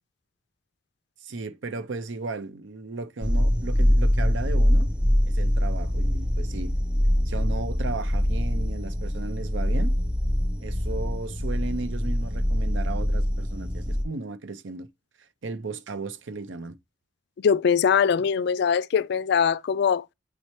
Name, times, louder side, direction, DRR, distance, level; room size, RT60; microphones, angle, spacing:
voice 1, 1.2-4.9 5.3-6.7 7.3-9.9 10.6-14.9 15.2-16.7, right 3 dB, 80° right, 0.6 m, -35 dB
sound 1, 3.2-14.0, equal, 5° right, 0.5 m, -24 dB
voice 2, 17.4-20.1, left 7 dB, 60° left, 0.3 m, -22 dB
8.4 x 4.3 x 3.0 m
head